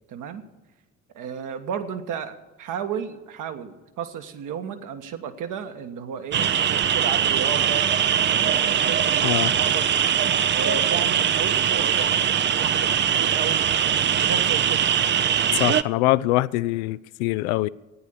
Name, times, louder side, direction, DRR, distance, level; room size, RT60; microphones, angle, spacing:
voice 1, 0.1-0.4 1.1-7.9 8.3-9.9 10.5-12.3 12.6-13.6 14.1-14.9, right 7 dB, 55° right, 1.4 m, -33 dB
sound 1, 6.3-15.8, right 9 dB, 30° right, 0.6 m, -21 dB
voice 2, 15.5-17.7, left 18 dB, 60° left, 0.5 m, -23 dB
14.0 x 9.6 x 7.0 m
figure-of-eight pair, 50°, 37 cm